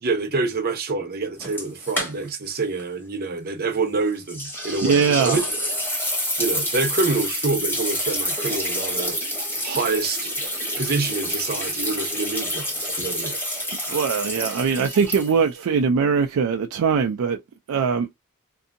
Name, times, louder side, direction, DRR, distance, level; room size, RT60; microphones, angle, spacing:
voice 1, 0.0-5.4 6.4-9.2 9.6-10.3 10.8-13.3, right 3 dB, 45° right, 0.7 m, -26 dB
sound 1, 1.4-2.5 2.8-2.9 4.3-15.6, equal, 10° left, 1.1 m, -28 dB
voice 2, 4.8-5.4 13.9-17.4 17.7-18.1, right 6 dB, 65° right, 0.3 m, -21 dB
2.6 x 2.6 x 2.5 m
head